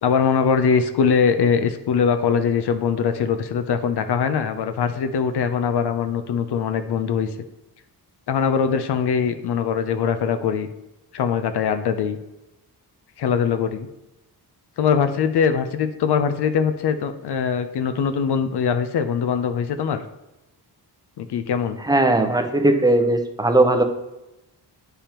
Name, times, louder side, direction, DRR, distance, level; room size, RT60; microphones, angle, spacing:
voice 1, 0.0-7.3 8.3-10.7 11.1-12.2 13.2-13.9 14.8-20.0 21.2-21.8, left 6 dB, 75° left, 9 dB, 0.7 m, -22 dB
voice 2, 21.8-23.8, right 2 dB, 10° right, 6 dB, 0.6 m, -18 dB
8.9 x 3.5 x 4.3 m, 0.95 s
wide cardioid pair, 130°, 40 cm